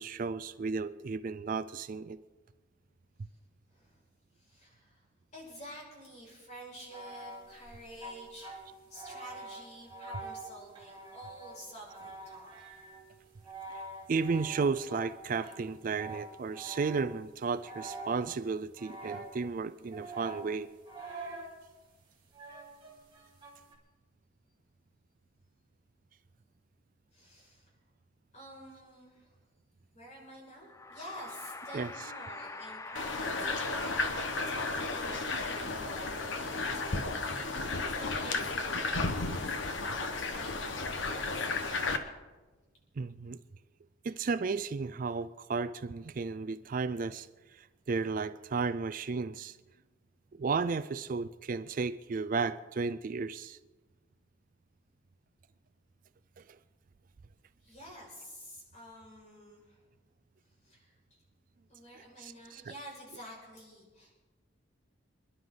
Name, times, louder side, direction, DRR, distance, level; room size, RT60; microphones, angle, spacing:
voice 1, 0.0-2.2 14.1-20.7 31.7-31.9 43.0-43.4 44.0-47.3 47.5-49.6 50.3-53.6 56.4-56.5 62.2-62.6, right 4 dB, 45° right, 0.4 m, -33 dB
voice 2, 3.7-4.0 4.3-5.0 5.3-12.6 27.1-27.7 28.3-29.4 29.9-37.7 38.0-41.9 57.6-59.9 60.6-61.2 61.7-64.1, equal, 35° left, 6.0 m, -50 dB
sound 1, 6.9-17.2 17.6-18.5 18.8-19.6 19.9-21.6 22.3-23.7, right 2 dB, 25° right, 3.0 m, -46 dB
sound 2, 30.6-35.7, left 3 dB, 15° left, 0.5 m, -45 dB
sound 3, 33.0-42.0, left 3 dB, 70° left, 1.2 m, -33 dB
27.5 x 11.0 x 3.9 m
head